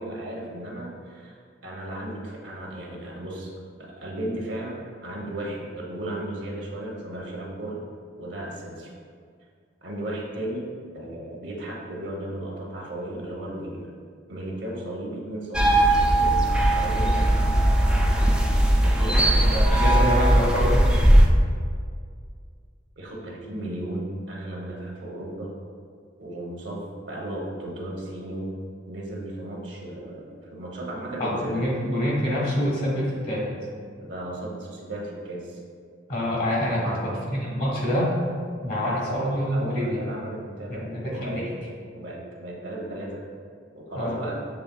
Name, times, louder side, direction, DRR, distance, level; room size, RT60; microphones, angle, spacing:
voice 1, 0.0-3.5 3.8-7.8 8.2-8.9 9.8-10.7 10.9-13.9 14.3-17.5 18.8-19.8 23.0-25.5 26.2-28.5 28.9-31.6 34.0-35.6 36.7-37.2 38.7-41.5 41.9-43.2 43.7-44.4, right 1 dB, 65° right, -2 dB, 0.9 m, -35 dB
sound 1, 15.5-21.3, right 1 dB, 5° right, 0.3 m, -19 dB
voice 2, 19.4-20.9 31.2-33.5 36.1-38.1 38.6-40.0 40.7-41.5 43.9-44.2, equal, 50° left, -5 dB, 1.5 m, -26 dB
7.0 x 3.2 x 2.3 m, 2.1 s
head